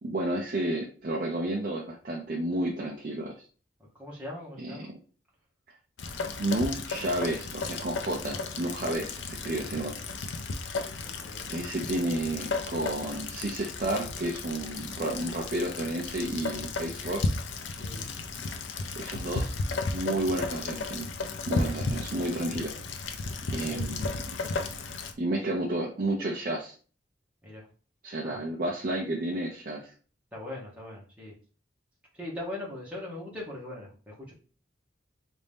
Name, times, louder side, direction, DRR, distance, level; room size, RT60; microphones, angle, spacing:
voice 1, 0.0-3.4 4.6-4.9 6.4-9.9 11.5-17.2 19.0-19.5 19.9-21.1 21.5-22.7 23.5-24.2 25.2-26.8 28.0-29.9, right 1 dB, 45° right, -1 dB, 0.5 m, -31 dB
voice 2, 3.9-4.9 8.8-9.0 9.5-9.9 11.0-11.5 17.7-18.1 23.5-23.9 27.4-27.7 28.2-28.4 30.3-31.3 32.1-34.3, left 1 dB, 5° right, -4 dB, 1.2 m, -41 dB
Rain, 6.0-25.1, left 3 dB, 75° left, 0.5 m, -34 dB
4.0 x 2.6 x 3.5 m, 0.40 s
head